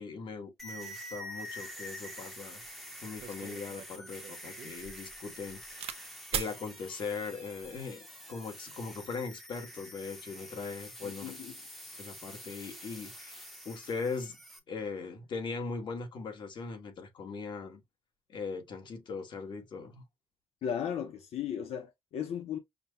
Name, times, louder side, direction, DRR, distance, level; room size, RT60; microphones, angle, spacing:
voice 1, 0.0-2.6 3.0-8.0 8.3-11.3 12.0-14.4 14.7-17.8 18.3-20.0, left 4 dB, 50° left, 1.5 m, -40 dB
sound 1, 0.6-14.6, equal, ahead, 0.8 m, -47 dB
sound 2, 2.6-2.7 3.2-6.0 6.3-6.6 7.4-7.8, right 9 dB, 75° right, 0.6 m, -40 dB
voice 2, 11.0-11.5 20.6-22.6, left 8 dB, 85° left, 0.7 m, -36 dB
5.9 x 2.2 x 2.7 m
wide cardioid pair, 175°, 10 cm